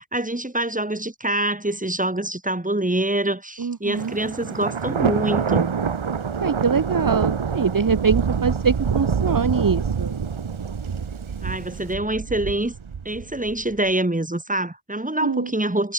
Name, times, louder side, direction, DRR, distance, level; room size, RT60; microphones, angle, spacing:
voice 1, 0.0-5.7 11.4-12.7 13.0-15.9, right 1 dB, 15° right, 4.2 m, -25 dB
voice 2, 3.6-4.1 6.4-10.2 15.2-15.5, right 5 dB, 45° right, 1.2 m, -23 dB
Thunder, 3.9-13.8, right 6 dB, 90° right, 2.5 m, -26 dB
wide cardioid pair, 75°, 47 cm